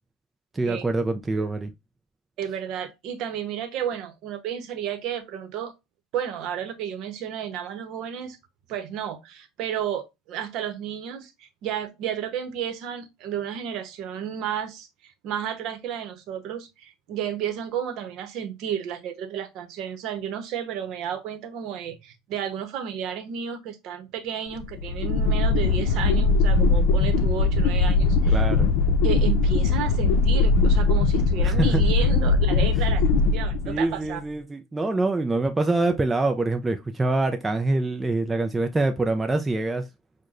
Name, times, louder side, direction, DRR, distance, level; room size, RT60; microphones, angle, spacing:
voice 1, 0.5-1.7 28.3-28.7 31.4-31.8 33.7-39.9, right 2 dB, 10° right, 0.3 m, -25 dB
voice 2, 2.4-5.7 6.1-8.4 8.7-28.4 29.0-34.2, right 9 dB, 55° right, 0.8 m, -32 dB
sound 1, 24.6-34.1, left 3 dB, 70° left, 0.6 m, -20 dB
6.3 x 2.1 x 2.5 m
cardioid pair, 140°, 0 cm